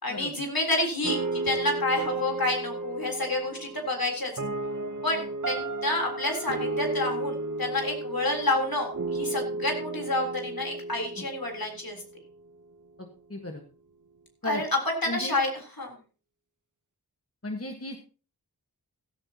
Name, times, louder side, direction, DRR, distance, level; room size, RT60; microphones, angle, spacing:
voice 1, 0.0-4.3 5.0-12.0 14.4-16.0, left 2 dB, 65° left, 2 dB, 3.7 m, -29 dB
sound 1, 1.0-12.2, right 2 dB, 50° right, 1.0 m, -33 dB
voice 2, 13.0-13.6 14.4-14.6 15.1-15.4 17.4-18.0, left 2 dB, 35° left, 3 dB, 1.5 m, -35 dB
15.5 x 13.5 x 2.9 m, 0.38 s
wide cardioid pair, 45°, 39 cm